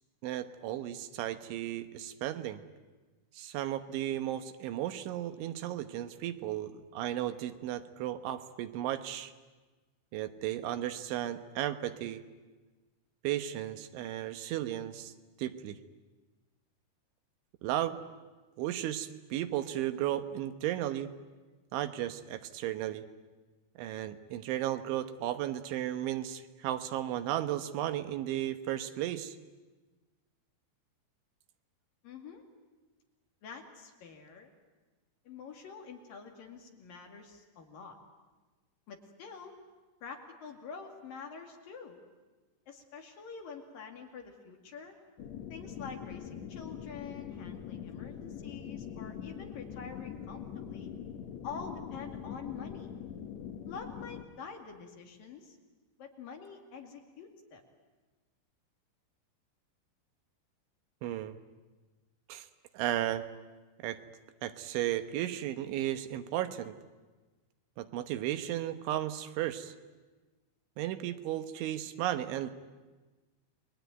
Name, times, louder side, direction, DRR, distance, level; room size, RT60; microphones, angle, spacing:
voice 1, 0.2-2.6 3.4-9.3 10.1-12.2 13.2-15.1 15.4-15.8 17.6-18.0 18.6-21.1 21.7-23.0 23.8-29.4 61.0-61.4 62.3-62.5 62.7-63.2 63.8-64.0 64.4-66.8 67.8-69.8 70.8-72.5, right 12 dB, 85° right, 9 dB, 3.5 m, -34 dB
voice 2, 32.0-32.4 33.4-34.5 35.3-38.0 38.9-39.6 40.0-42.0 42.7-44.9 45.5-50.9 51.4-52.9 53.7-55.6 56.0-57.6, left 5 dB, 55° left, 3 dB, 3.6 m, -46 dB
sound 1, 45.2-54.2, left 8 dB, 80° left, 1.6 m, -43 dB
29.5 x 21.5 x 9.3 m, 1.3 s
omnidirectional pair, 5.3 m